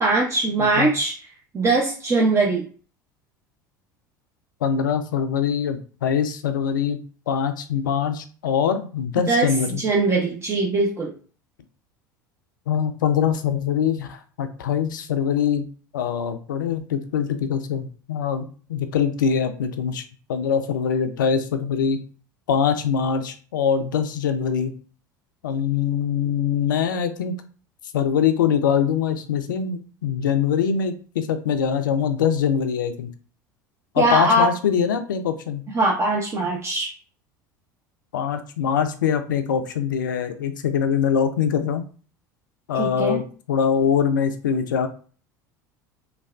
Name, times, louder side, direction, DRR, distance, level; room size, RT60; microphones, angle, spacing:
voice 1, 0.0-1.2 1.5-2.7 9.2-9.5 9.8-11.1 34.0-34.5 35.7-36.9 42.8-43.2, right 2 dB, 25° right, -1 dB, 0.6 m, -21 dB
voice 2, 0.6-0.9 4.6-9.8 12.7-15.6 15.9-18.4 18.7-20.0 20.3-22.0 22.5-24.7 25.4-27.4 27.9-33.1 33.9-35.6 38.1-41.9 42.7-43.2 43.5-44.9, left 7 dB, 70° left, 9 dB, 0.4 m, -23 dB
3.2 x 2.3 x 2.3 m, 0.40 s
figure-of-eight pair, 70°, 11 cm